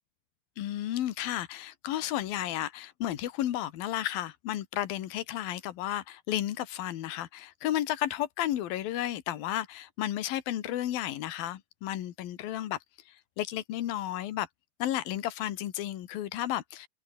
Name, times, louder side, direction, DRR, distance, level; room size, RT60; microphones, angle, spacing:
voice 1, 0.6-12.8 13.1-14.5 14.8-16.9, left 13 dB, 80° left, 3.3 m, -33 dB
omnidirectional pair, 4.2 m